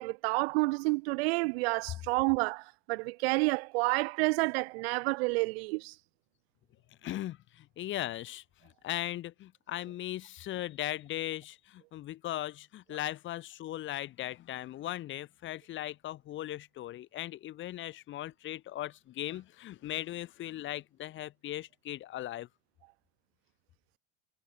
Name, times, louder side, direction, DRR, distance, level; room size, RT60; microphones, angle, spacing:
voice 1, 0.0-5.9, right 26 dB, 55° right, 0.4 m, -29 dB
voice 2, 7.0-22.5, left 14 dB, 30° left, 1.7 m, -38 dB
supercardioid pair, 150°, 38 cm